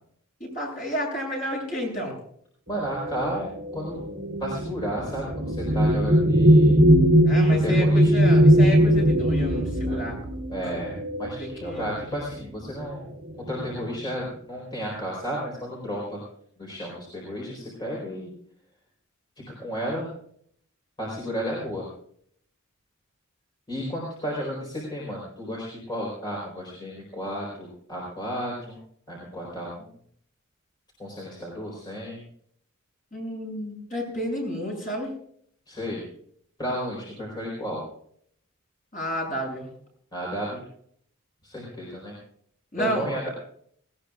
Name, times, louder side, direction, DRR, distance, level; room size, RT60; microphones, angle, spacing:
voice 1, 0.4-2.2 7.2-10.2 10.6-10.7 11.4-11.9 33.1-35.1 38.9-39.7 42.7-43.1, equal, 40° left, -1 dB, 7.8 m, -31 dB
voice 2, 2.7-4.0 4.4-6.9 7.6-8.1 9.8-10.0 10.5-13.1 13.5-16.2 16.6-18.3 19.5-20.1 21.0-21.9 23.7-28.8 29.1-29.9 31.0-32.3 35.7-36.0 36.6-37.8 40.1-40.6 41.4-42.1 42.8-43.3, equal, 20° left, -4 dB, 4.3 m, -33 dB
sound 1, 3.0-11.9 12.8-13.0 13.3-13.9, equal, 50° right, 2.8 m, -20 dB
19.5 x 18.5 x 2.5 m, 0.65 s
head